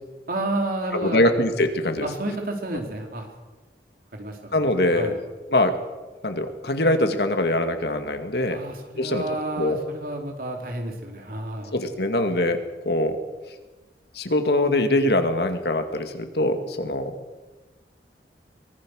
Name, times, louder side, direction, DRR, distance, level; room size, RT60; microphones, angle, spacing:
voice 1, 0.3-1.2 2.0-3.3 4.1-4.7 4.9-5.2 8.5-11.7, right 2 dB, 55° right, 2 dB, 3.8 m, -30 dB
voice 2, 0.9-2.1 4.5-5.2 5.5-5.8 6.2-8.6 9.0-9.2 9.6-9.8 11.7-13.2 14.1-17.2, left 1 dB, 65° left, 7 dB, 2.2 m, -23 dB
24.0 x 19.5 x 6.5 m, 1.2 s
head